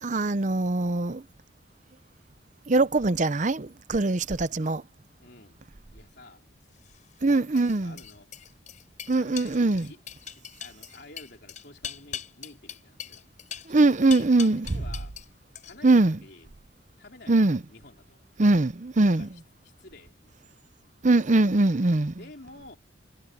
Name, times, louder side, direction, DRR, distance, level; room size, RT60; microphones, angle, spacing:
voice 1, 0.0-1.2 2.7-4.8 7.2-7.9 9.1-9.9 13.7-14.7 15.8-16.2 17.3-17.6 18.4-19.3 21.0-22.2, right 2 dB, 40° right, 0.7 m, -22 dB
voice 2, 5.2-5.6 5.9-6.5 7.2-8.3 9.2-10.0 10.4-13.3 13.7-15.2 15.6-16.5 17.0-18.2 19.0-20.7 22.2-22.8, left 2 dB, 60° left, 4.0 m, -50 dB
sound 1, 6.7-15.3 15.6-16.0, left 8 dB, 40° left, 6.5 m, -41 dB
head